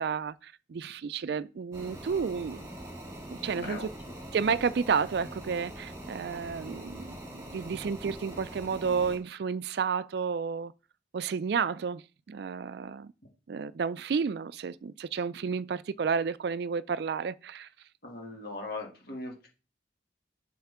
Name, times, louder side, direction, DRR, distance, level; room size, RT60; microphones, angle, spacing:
voice 1, 0.0-2.7 3.3-3.9 4.3-10.7 11.1-13.1 13.5-17.7, right 6 dB, 60° right, 0.3 m, -31 dB
sound 1, 1.7-9.2, right 1 dB, 15° right, 2.5 m, -43 dB
voice 2, 3.5-3.9 18.0-19.5, left 2 dB, 55° left, 2.2 m, -39 dB
7.9 x 6.5 x 3.6 m
head